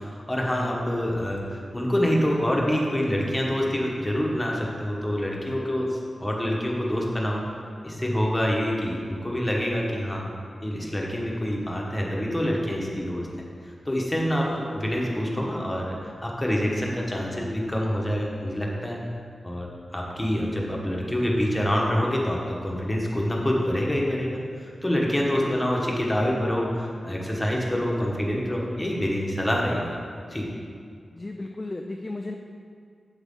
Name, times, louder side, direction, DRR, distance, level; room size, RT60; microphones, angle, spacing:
voice 1, 0.0-7.4 7.8-10.3 10.6-13.3 13.6-19.0 19.4-30.0 30.3-30.5, equal, 10° left, -2 dB, 1.2 m, -26 dB
voice 2, 31.1-32.3, left 2 dB, 25° left, 2 dB, 0.4 m, -34 dB
8.0 x 7.1 x 3.7 m, 2.2 s
wide cardioid pair, 125°, 0 cm